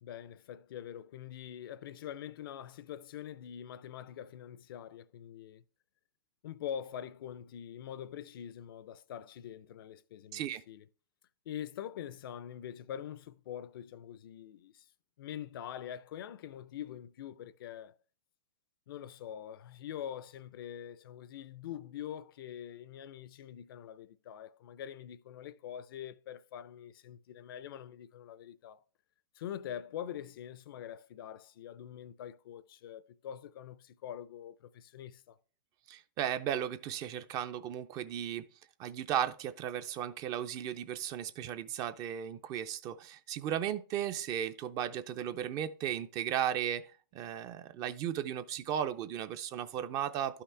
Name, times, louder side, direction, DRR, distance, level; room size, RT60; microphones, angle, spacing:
voice 1, 0.0-5.6 6.4-10.8 11.5-14.9 15.2-17.9 18.9-28.8 29.3-35.4, left 10 dB, 70° left, 0.5 m, -44 dB
voice 2, 10.3-10.6 35.9-38.5 38.8-50.4, right 10 dB, 30° right, 0.5 m, -35 dB
11.5 x 5.7 x 3.3 m
hypercardioid pair, 150°, 12 cm